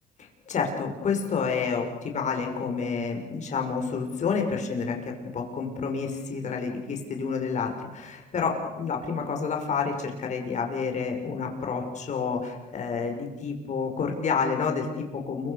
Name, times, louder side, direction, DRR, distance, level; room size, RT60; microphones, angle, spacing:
voice 1, 0.5-5.0 5.3-15.5, left 5 dB, 45° left, 3 dB, 6.3 m, -29 dB
29.0 x 24.5 x 6.8 m, 1.1 s
cardioid pair, 110°, 17 cm